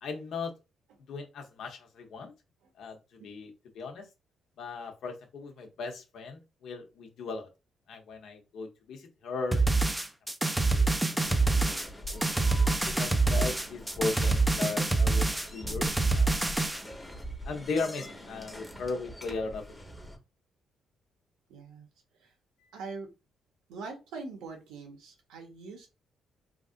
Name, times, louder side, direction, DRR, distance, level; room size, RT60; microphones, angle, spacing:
voice 1, 0.0-0.5 1.1-2.3 2.8-4.1 4.6-7.5 7.9-9.9 10.4-11.6 12.1-12.2 12.8-16.8 17.4-19.9 22.6-22.8, left 4 dB, 70° left, 4 dB, 0.8 m, -37 dB
sound 1, 9.5-16.8, right 3 dB, 10° right, 0.5 m, -26 dB
sound 2, 11.2-20.2, equal, 10° left, 0.9 m, -44 dB
voice 2, 21.5-21.9 22.7-23.1 23.7-25.9, right 4 dB, 90° right, 3 dB, 1.0 m, -42 dB
3.3 x 2.5 x 2.5 m, 0.27 s
cardioid pair, 90°, 0 cm